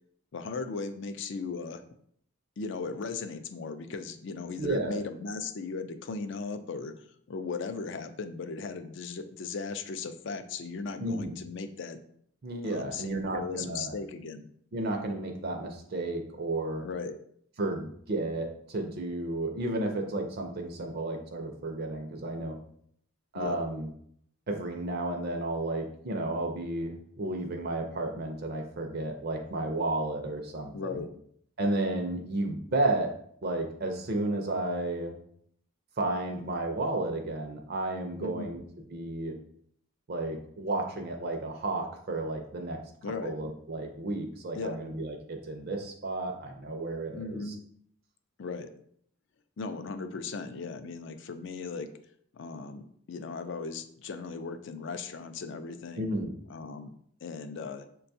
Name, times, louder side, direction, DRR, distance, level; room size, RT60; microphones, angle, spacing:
voice 1, 0.3-1.8 2.6-6.9 7.3-12.0 12.6-14.4 16.8-17.2 23.3-23.6 30.7-31.1 38.2-38.5 43.0-43.3 44.5-44.8 47.1-47.6 48.4-48.7 49.6-51.9 52.3-56.0 56.5-56.9 57.2-57.9, left 4 dB, 55° left, 9 dB, 0.4 m, -37 dB
voice 2, 4.6-5.0 11.0-11.3 12.4-13.9 14.7-16.8 17.6-22.6 23.3-23.9 24.5-31.0 31.6-33.1 33.4-35.1 36.0-38.6 38.9-39.3 40.1-42.8 43.2-47.5 56.0-56.3, right 2 dB, 45° right, 4 dB, 0.5 m, -32 dB
6.6 x 2.3 x 2.6 m, 0.66 s
head